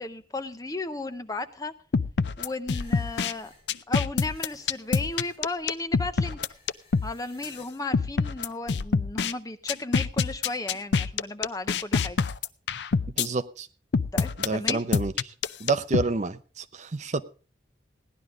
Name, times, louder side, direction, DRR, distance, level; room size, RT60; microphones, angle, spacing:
voice 1, 0.0-1.7 2.4-3.5 3.9-6.4 7.0-12.2 14.1-14.8, left 2 dB, 20° left, 10 dB, 0.6 m, -34 dB
sound 1, 1.9-3.3 3.7-7.1 7.4-7.5 7.9-9.3 9.7-13.3 13.9-16.1, left 5 dB, 70° left, 0.5 m, -25 dB
sound 2, 2.6-7.7, left 2 dB, 35° left, 7.4 m, -55 dB
voice 2, 13.2-13.7 14.4-15.3 15.6-17.2, right 3 dB, 40° right, 12 dB, 0.6 m, -29 dB
17.0 x 11.0 x 3.7 m, 0.37 s
head